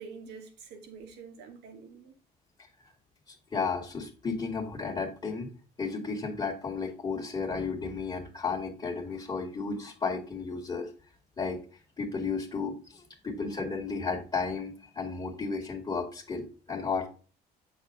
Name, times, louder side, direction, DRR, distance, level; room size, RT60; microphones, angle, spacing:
voice 1, 0.0-2.1, right 5 dB, 85° right, 2.3 m, -46 dB
voice 2, 3.3-5.5 5.8-10.9 11.4-17.1, left 4 dB, 30° left, 2.1 m, -33 dB
8.4 x 6.7 x 3.7 m
cardioid pair, 110°, 17 cm